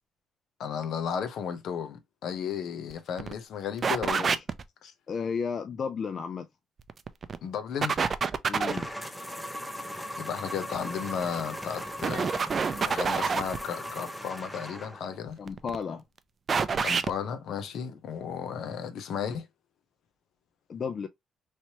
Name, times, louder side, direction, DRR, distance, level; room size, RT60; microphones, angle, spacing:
voice 1, 0.6-4.4 4.8-4.9 7.4-8.1 10.2-12.4 12.8-15.4 16.8-19.5, left 7 dB, 75° left, 0.7 m, -34 dB
sound 1, 2.9-3.0 3.2-3.3 3.8-4.6 6.8-7.4 7.8-8.9 11.1-11.4 12.0-13.6 15.3-15.8 16.5-17.1, right 5 dB, 45° right, 0.4 m, -27 dB
voice 2, 4.1-4.4 5.1-6.5 8.5-8.9 15.4-16.0 20.7-21.1, left 6 dB, 50° left, 0.3 m, -33 dB
sound 2, 8.6-15.2, equal, 5° left, 0.7 m, -38 dB
3.2 x 2.9 x 2.8 m
cardioid pair, 90°, 0 cm